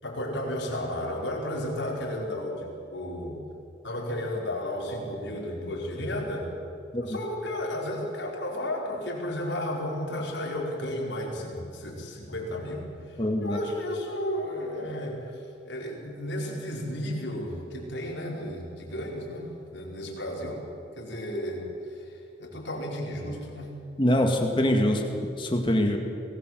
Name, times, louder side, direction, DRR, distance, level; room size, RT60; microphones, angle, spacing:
voice 1, 0.0-3.4 3.8-6.5 7.0-20.6 21.0-23.7, left 1 dB, 75° left, -2 dB, 5.2 m, -33 dB
voice 2, 13.2-13.6 24.0-25.0 25.4-26.0, left 1 dB, 25° left, 3 dB, 1.8 m, -23 dB
23.0 x 18.5 x 7.8 m, 2.7 s
head